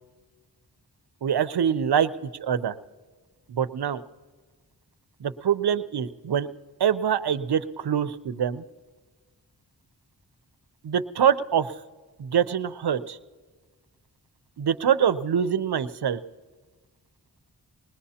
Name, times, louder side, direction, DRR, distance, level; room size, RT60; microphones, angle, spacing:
voice 1, 1.2-2.1 2.4-2.8 3.5-4.0 5.2-6.5 6.8-8.6 10.8-11.7 12.3-13.2 14.6-16.2, right 8 dB, 70° right, 12 dB, 0.7 m, -24 dB
20.5 x 20.5 x 2.9 m, 1.4 s
wide cardioid pair, 70°, 40 cm